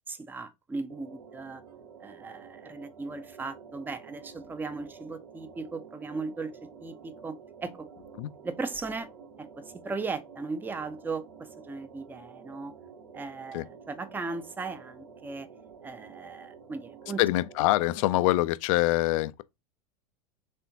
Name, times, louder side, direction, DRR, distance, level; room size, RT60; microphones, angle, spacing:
voice 1, 0.1-1.6 2.0-7.9 8.4-9.1 9.4-12.7 13.1-15.5 15.8-17.2, right 4 dB, 10° right, 0.5 m, -37 dB
sound 1, 0.9-18.3, right 6 dB, 80° right, 0.9 m, -50 dB
voice 2, 17.2-19.4, left 18 dB, 55° left, 0.4 m, -25 dB
4.3 x 3.4 x 2.7 m
hypercardioid pair, 85°, 20 cm